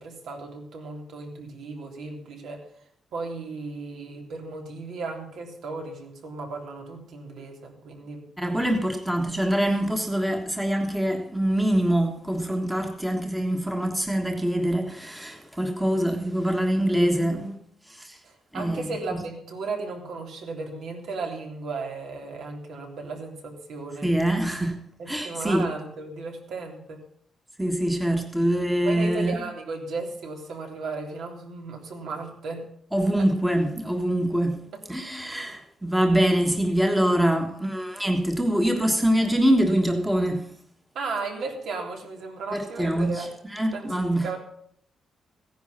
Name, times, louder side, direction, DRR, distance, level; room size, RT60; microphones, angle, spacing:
voice 1, 0.0-2.7 3.1-8.3 18.2-24.1 25.0-27.0 28.8-32.6 33.2-33.3 41.0-43.3 43.7-44.4, right 3 dB, 70° right, 3.5 m, -35 dB
voice 2, 8.4-17.5 17.9-18.2 18.5-18.9 24.0-24.8 25.1-25.7 27.6-29.4 32.9-34.6 34.9-40.4 42.5-43.3 43.5-44.3, right 1 dB, 5° right, 1.5 m, -24 dB
16.0 x 10.5 x 5.6 m
wide cardioid pair, 175°, 0 cm